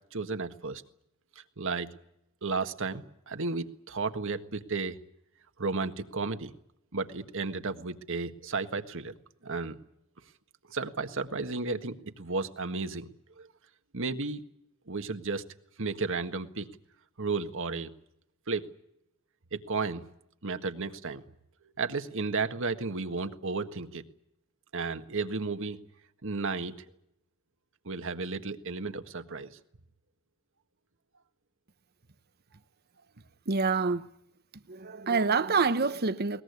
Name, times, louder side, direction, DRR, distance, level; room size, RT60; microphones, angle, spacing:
voice 1, 0.1-0.8 1.4-1.9 2.4-5.0 5.6-6.5 6.9-9.2 9.4-9.8 10.7-13.1 13.4-13.5 13.9-14.4 14.9-15.4 15.8-16.7 17.2-17.9 18.5-18.7 19.5-20.1 20.4-21.2 21.6-24.0 24.7-25.8 26.2-26.8 27.9-29.6, right 4 dB, 65° right, 1.6 m, -33 dB
voice 2, 33.5-34.1 34.7-36.4, right 4 dB, 45° right, 1.0 m, -27 dB
22.0 x 19.5 x 9.6 m
head